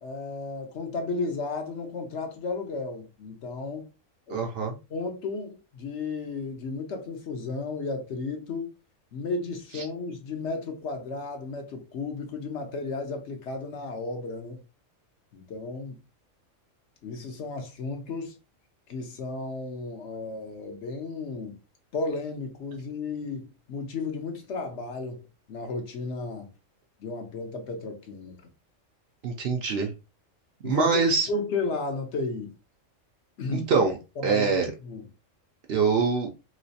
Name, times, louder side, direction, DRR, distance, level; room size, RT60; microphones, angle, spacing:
voice 1, 0.0-3.9 4.3-8.7 9.1-14.6 15.3-16.0 17.0-18.3 18.9-21.6 21.9-25.2 25.5-26.5 27.0-28.4 30.6-31.0 31.3-32.5 33.4-33.7 34.2-34.5 34.8-35.0, left 3 dB, 65° left, 1.0 m, -33 dB
voice 2, 4.3-4.7 29.2-29.9 30.6-31.3 33.5-34.0 34.2-34.7 35.7-36.3, right 5 dB, 60° right, 0.7 m, -24 dB
3.1 x 3.0 x 2.7 m
omnidirectional pair, 1.3 m